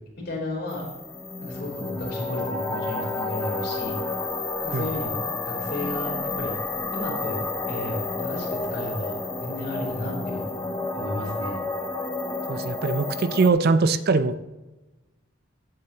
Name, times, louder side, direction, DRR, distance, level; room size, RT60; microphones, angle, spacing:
voice 1, 0.2-0.8 1.4-4.0 4.6-6.1 6.4-6.5 6.9-11.6, left 1 dB, 55° left, -3 dB, 3.6 m, -33 dB
sound 1, 0.7-13.5, left 3 dB, 15° left, 0.7 m, -30 dB
voice 2, 12.5-14.4, right 4 dB, 50° right, 13 dB, 0.5 m, -22 dB
15.5 x 7.7 x 2.9 m, 1.1 s
head